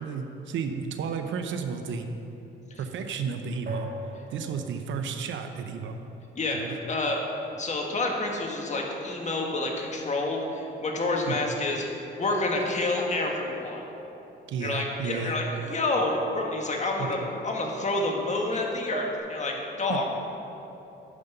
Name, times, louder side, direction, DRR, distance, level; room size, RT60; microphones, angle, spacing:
voice 1, 0.0-2.1 2.8-3.9 4.3-6.0 6.5-6.8 11.3-11.4 14.5-15.4 17.0-17.1 19.9-20.0, right 6 dB, 75° right, 6 dB, 0.8 m, -32 dB
sound 1, 3.7-4.7 6.9-7.4 8.7-9.6 12.2-13.3 16.0-16.9 18.9-19.2, right 2 dB, 50° right, 1.5 m, -40 dB
voice 2, 6.3-7.2 7.5-11.9 12.2-13.8 14.6-20.1, left 2 dB, 35° left, 0 dB, 1.7 m, -28 dB
9.8 x 5.4 x 6.6 m, 3.0 s
cardioid pair, 90°, 20 cm